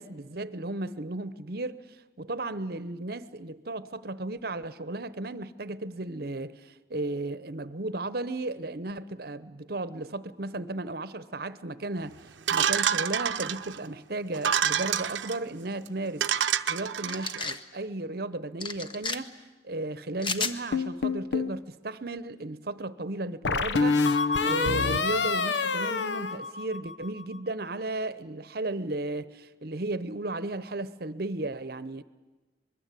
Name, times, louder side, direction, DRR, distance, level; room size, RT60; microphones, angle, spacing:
voice 1, 0.0-12.2 12.5-16.3 16.7-19.3 19.6-24.0 24.4-32.0, right 2 dB, 55° right, 0.9 m, -34 dB
Sound of a kicked can, 12.5-13.8 14.3-15.4 15.9-16.0 16.2-17.4, right 8 dB, 90° right, 0.8 m, -27 dB
sound 1, 17.1-17.6 18.6-19.2 20.2-20.6, left 4 dB, 25° left, 1.0 m, -32 dB
sound 2, 20.7-21.6 23.4-27.1, left 4 dB, 75° left, 0.9 m, -26 dB
24.0 x 21.5 x 8.4 m
head